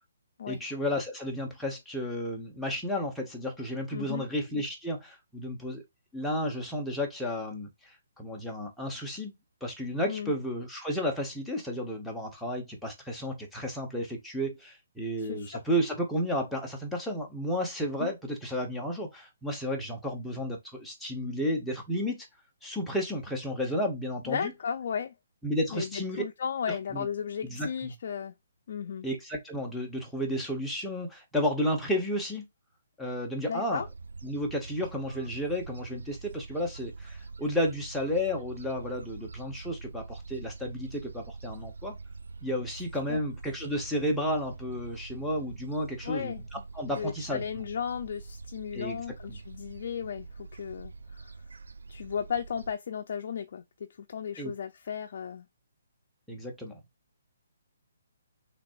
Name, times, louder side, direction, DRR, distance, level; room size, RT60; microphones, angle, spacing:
voice 1, 0.5-5.8 6.1-9.3 9.6-22.3 22.6-24.5 25.4-26.2 26.7-27.1 27.5-27.9 29.0-32.4 33.0-33.8 34.2-42.0 42.4-47.4 48.7-49.0 54.4-54.5 56.3-56.8, equal, ahead, 1.1 m, -32 dB
voice 2, 3.9-4.2 10.1-10.3 15.2-15.6 18.0-18.1 24.3-25.1 25.7-28.3 28.7-29.1 33.5-33.9 43.1-43.2 46.0-46.4 46.8-51.4 51.9-55.5, left 7 dB, 45° left, 0.6 m, -35 dB
Gull seagull, 33.8-52.7, right 4 dB, 90° right, 1.0 m, -45 dB
6.0 x 3.4 x 2.5 m
hypercardioid pair, 170°, 0 cm